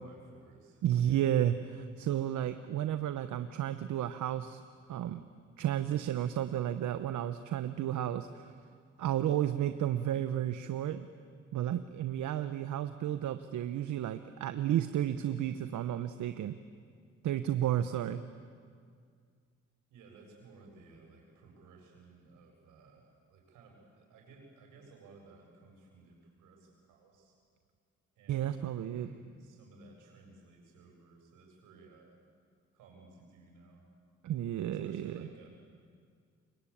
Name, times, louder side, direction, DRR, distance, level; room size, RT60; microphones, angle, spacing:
voice 1, 0.0-1.3 19.9-27.4 28.1-28.6 28.9-32.2 32.7-33.9 34.7-35.5, right 3 dB, 90° right, 1 dB, 7.8 m, -57 dB
voice 2, 0.8-4.6 4.9-5.2 5.6-8.5 9.0-11.1 11.5-16.6 17.2-18.2 28.3-29.1 34.2-35.3, right 11 dB, 75° right, 10 dB, 1.1 m, -32 dB
28.5 x 23.5 x 8.8 m, 2.1 s
cardioid pair, 90°, 30 cm